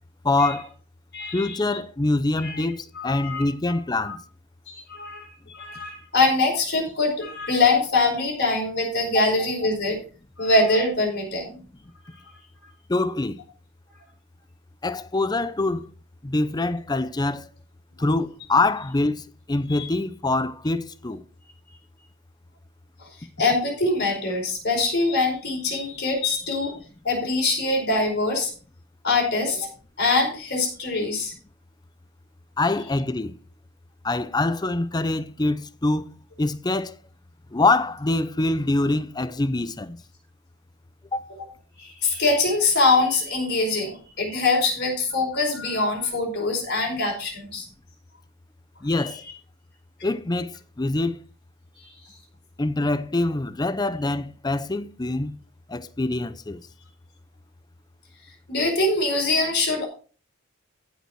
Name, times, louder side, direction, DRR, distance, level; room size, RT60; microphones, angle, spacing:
voice 1, 0.2-0.7 1.3-4.2 12.9-13.4 14.8-15.9 16.2-17.5 18.0-19.2 19.5-21.2 32.6-33.3 34.0-36.1 36.4-36.9 37.5-40.0 41.1-41.3 48.8-49.2 50.0-51.2 52.6-55.3 55.7-56.6, left 2 dB, 20° left, 0.5 m, -24 dB
voice 2, 1.1-1.6 2.4-2.6 2.9-3.5 4.0-4.2 4.7-5.3 5.5-10.0 10.4-11.5 12.1-12.4 19.7-19.9 23.4-26.8 27.0-28.5 29.0-29.7 30.0-31.3 41.8-47.7 48.9-49.2 58.5-59.9, left 3 dB, 50° left, 4.8 m, -23 dB
15.0 x 5.6 x 4.6 m
head